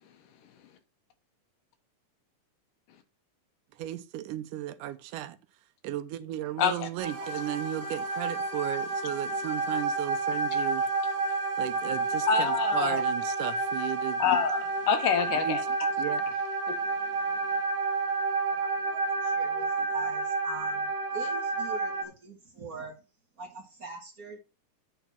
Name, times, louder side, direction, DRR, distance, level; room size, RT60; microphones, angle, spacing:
voice 1, 3.8-5.4 5.8-10.9 11.6-14.2 15.4-15.6 16.0-16.3, right 13 dB, 80° right, 2.2 m, -35 dB
voice 2, 6.6-6.9 12.3-13.0 14.2-15.6 16.7-16.8, left 7 dB, 90° left, 2.7 m, -26 dB
sound 1, 7.0-22.0, right 3 dB, 55° right, 2.6 m, -30 dB
voice 3, 18.5-22.9 23.4-24.4, right 3 dB, 35° right, 1.5 m, -43 dB
9.0 x 4.5 x 5.8 m
omnidirectional pair, 3.7 m